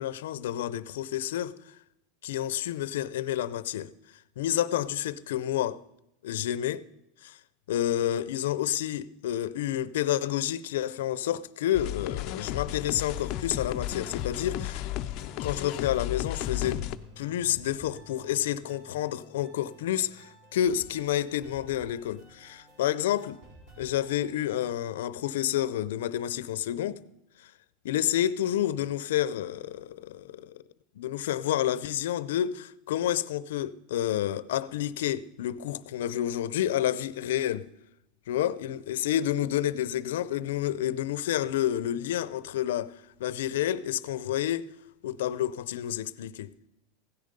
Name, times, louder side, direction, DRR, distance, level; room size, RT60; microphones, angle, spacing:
voice 1, 0.0-1.6 2.2-3.9 4.4-5.8 6.2-6.8 7.2-7.4 7.7-14.8 15.4-16.9 17.2-23.4 23.8-27.0 27.4-27.5 27.8-30.6 31.0-37.7 38.3-42.9 43.2-44.7 45.0-46.5, left 12 dB, 80° left, 0.6 m, -29 dB
sound 1, 11.7-17.0, left 14 dB, 35° left, 0.5 m, -33 dB
sound 2, 12.6-24.7, right 1 dB, 40° right, 5.9 m, -53 dB
16.0 x 10.5 x 5.2 m
supercardioid pair, 180°, 0 cm